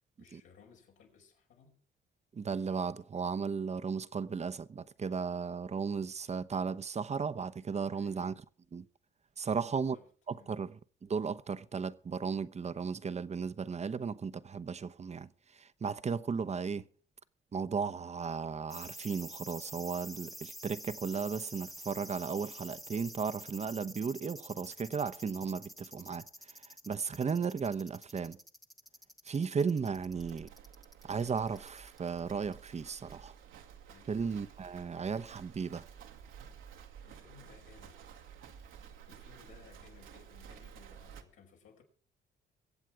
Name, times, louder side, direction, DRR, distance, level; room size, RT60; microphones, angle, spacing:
voice 1, 0.2-1.8 7.9-8.3 9.5-10.1 10.4-10.5 33.9-34.2 37.0-38.2 39.1-41.8, left 6 dB, 90° left, 5.5 m, -60 dB
voice 2, 2.3-8.3 8.7-8.8 9.4-10.0 10.3-10.7 11.0-16.9 17.5-28.4 29.2-30.5 31.0-33.3 34.1-35.8, right 5 dB, 35° right, 0.9 m, -35 dB
sound 1, 18.7-32.8 33.1-33.2, equal, ahead, 1.0 m, -48 dB
Livestock farm animals working animals, 29.9-41.2, right 8 dB, 85° right, 1.9 m, -53 dB
23.5 x 8.2 x 4.8 m
cardioid pair, 90°, 20 cm